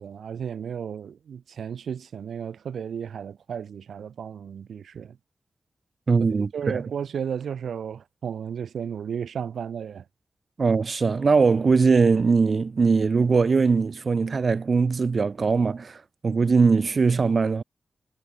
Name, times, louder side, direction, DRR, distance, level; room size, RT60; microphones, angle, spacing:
voice 1, 0.0-5.2 6.5-10.0, right 7 dB, 85° right, 7.7 m, -33 dB
voice 2, 6.1-6.8 10.6-17.6, right 4 dB, 60° right, 1.1 m, -21 dB
cardioid pair, 45°, 0 cm